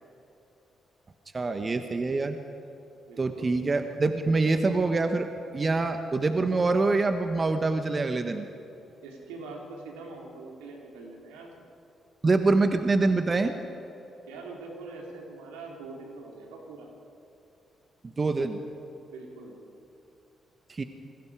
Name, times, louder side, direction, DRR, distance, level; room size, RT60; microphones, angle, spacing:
voice 1, 1.3-2.4 3.2-5.3 5.5-8.5 12.2-13.5 18.2-18.6 20.7-20.8, right 3 dB, 35° right, 7 dB, 1.4 m, -25 dB
voice 2, 3.1-3.6 9.0-11.5 14.3-16.9 19.1-19.6, right 3 dB, 85° right, 0 dB, 3.3 m, -43 dB
28.0 x 21.5 x 4.9 m, 2.9 s
hypercardioid pair, 45°, 0 cm